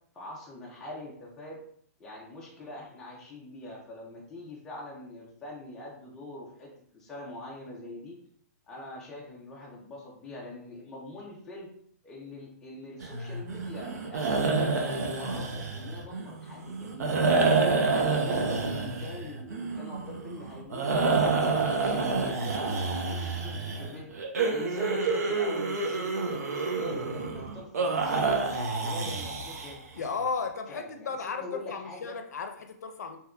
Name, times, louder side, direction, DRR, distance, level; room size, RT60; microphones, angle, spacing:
voice 1, 0.1-1.6 2.0-8.2 8.7-11.7 12.0-17.1 17.5-24.1 24.5-26.4 26.7-28.5 28.8-29.8 30.2-30.3 30.7-32.1, left 1 dB, 5° left, -4 dB, 0.3 m, -43 dB
sound 1, 13.0-30.0, right 3 dB, 75° right, 0.6 m, -28 dB
voice 2, 29.9-33.2, left 5 dB, 80° left, 6 dB, 0.5 m, -34 dB
3.5 x 2.8 x 2.2 m, 0.65 s
hypercardioid pair, 175°, 9 cm